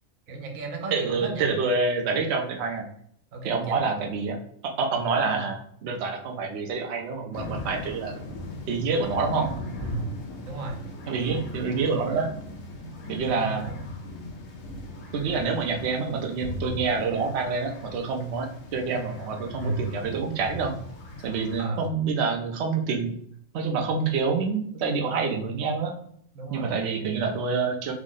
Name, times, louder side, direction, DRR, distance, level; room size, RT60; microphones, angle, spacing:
voice 1, 0.3-1.5 3.3-3.8 9.8-10.1 10.4-10.8 13.3-13.8 19.6-19.9 21.6-21.9 26.3-26.7, right 3 dB, 85° right, 3 dB, 1.1 m, -33 dB
voice 2, 0.9-2.9 3.4-4.4 4.6-8.2 8.7-9.5 11.1-12.3 13.1-13.7 15.1-20.7 21.2-23.1 23.5-25.9 26.5-27.9, right 4 dB, 65° right, 2 dB, 0.8 m, -27 dB
sound 1, 7.3-21.6, left 1 dB, 75° left, 1.0 m, -38 dB
3.4 x 2.1 x 3.7 m, 0.65 s
omnidirectional pair, 1.4 m